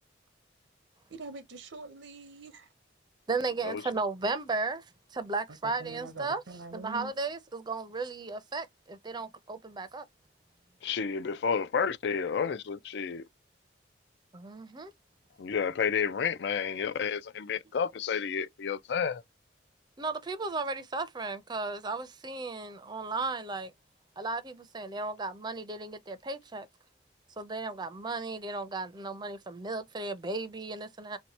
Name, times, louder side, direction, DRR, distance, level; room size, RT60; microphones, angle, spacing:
voice 1, 1.1-2.6 5.8-7.1, right 3 dB, 90° right, 0.7 m, -44 dB
voice 2, 3.3-4.9 5.1-10.1 14.3-14.9 20.0-23.7 24.2-26.7 27.4-31.2, right 3 dB, 25° right, 0.5 m, -35 dB
voice 3, 10.8-13.2 15.4-19.2, left 6 dB, 65° left, 0.4 m, -30 dB
2.8 x 2.1 x 4.0 m
head